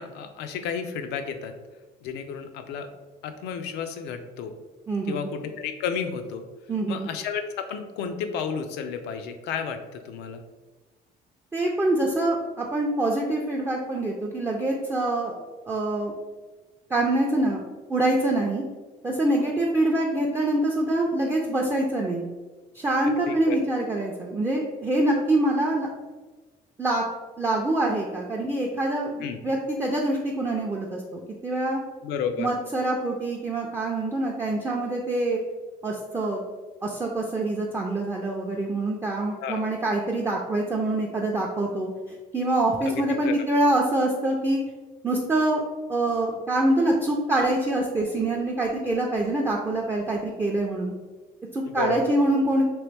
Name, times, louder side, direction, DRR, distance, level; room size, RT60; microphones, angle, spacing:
voice 1, 0.0-1.5 2.0-2.9 3.2-4.5 5.1-6.4 6.9-9.8 10.0-10.4 23.0-23.6 29.2-29.4 32.0-32.5 39.4-39.7 42.9-43.3 51.6-52.2, left 6 dB, 85° left, 8 dB, 0.4 m, -32 dB
voice 2, 4.9-5.3 6.7-7.1 11.5-16.1 16.9-17.6 17.9-18.6 19.0-22.2 22.7-25.9 26.8-27.0 27.4-31.8 32.4-35.4 35.8-36.4 36.8-41.9 42.3-44.6 45.0-45.6 45.9-50.9 51.5-52.6, right 1 dB, 15° right, -2 dB, 0.4 m, -25 dB
3.0 x 2.9 x 3.3 m, 1.2 s
cardioid pair, 110°, 17 cm